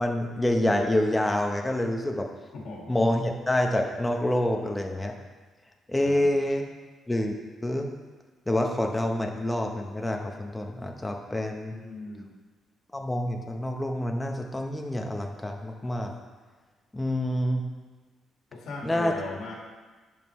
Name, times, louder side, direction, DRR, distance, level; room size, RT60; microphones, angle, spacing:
voice 1, 0.0-2.3 2.9-5.1 5.9-6.6 7.1-7.3 7.6-7.9 8.5-11.7 12.9-16.1 16.9-17.6 18.8-19.1, left 1 dB, 10° left, 3 dB, 1.0 m, -27 dB
voice 2, 2.5-3.0 6.0-6.3 11.7-12.3 18.5-19.5, left 2 dB, 70° left, -2 dB, 1.9 m, -38 dB
10.5 x 5.6 x 3.2 m, 1.3 s
cardioid pair, 90°, 0 cm